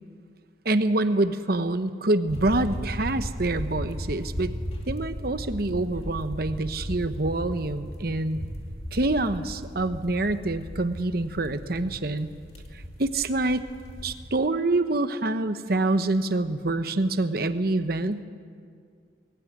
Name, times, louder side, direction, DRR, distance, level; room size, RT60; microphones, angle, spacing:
voice 1, 0.6-4.5 4.9-8.4 8.9-12.3 13.0-13.6 14.0-18.2, right 2 dB, 50° right, 10 dB, 1.0 m, -26 dB
sound 1, 2.3-14.3, equal, 30° left, 2.5 m, -36 dB
21.5 x 16.0 x 9.6 m, 2.2 s
head